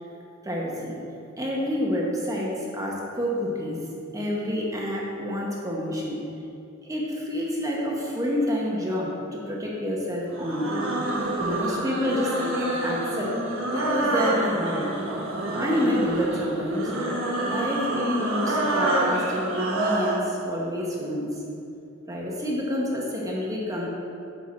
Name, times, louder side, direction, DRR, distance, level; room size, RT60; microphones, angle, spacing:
voice 1, 0.4-1.0 1.4-3.8 4.1-6.2 6.8-10.9 11.4-13.4 13.7-14.9 15.5-16.9 17.4-21.3 22.1-23.9, equal, 15° right, -3 dB, 1.0 m, -28 dB
sound 1, 10.3-20.2, right 1 dB, 80° right, 1.3 m, -27 dB
8.6 x 4.6 x 5.8 m, 2.7 s
head